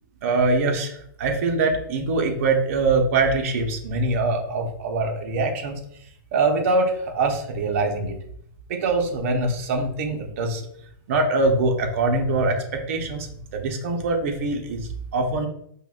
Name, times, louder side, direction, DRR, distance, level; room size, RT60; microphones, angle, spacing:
voice 1, 0.2-5.8 6.3-8.2 8.7-10.7 11.1-15.5, right 3 dB, 40° right, 3 dB, 0.6 m, -23 dB
5.3 x 2.1 x 2.3 m, 0.70 s
hypercardioid pair, 170°, 11 cm